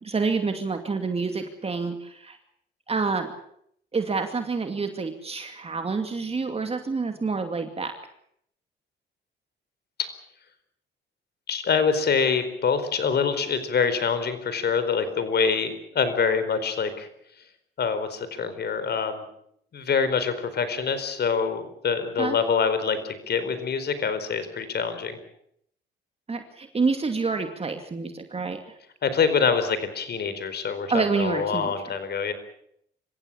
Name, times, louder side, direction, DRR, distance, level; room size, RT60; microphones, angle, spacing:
voice 1, 0.0-2.4 2.9-3.3 3.9-7.9 22.2-22.4 26.3-28.6 30.9-31.7, right 4 dB, 30° right, 6 dB, 2.5 m, -27 dB
voice 2, 11.5-17.1 17.8-19.2 19.7-25.2 29.0-32.3, left 5 dB, 55° left, 11 dB, 4.5 m, -25 dB
26.0 x 16.0 x 8.7 m, 0.70 s
cardioid pair, 90°, 20 cm